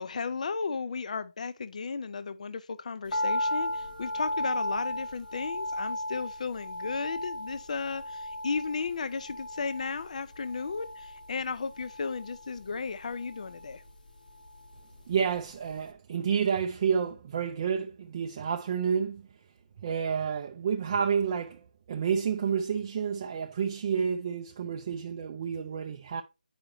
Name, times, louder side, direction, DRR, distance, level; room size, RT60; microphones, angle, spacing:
voice 1, 0.0-13.8, left 5 dB, 55° left, 0.4 m, -34 dB
sound 1, 3.1-15.4 15.7-15.8, left 1 dB, 75° left, 1.1 m, -36 dB
voice 2, 15.1-19.2 19.8-26.2, right 7 dB, 25° right, 0.4 m, -30 dB
8.6 x 4.9 x 3.0 m
figure-of-eight pair, 165°, 5 cm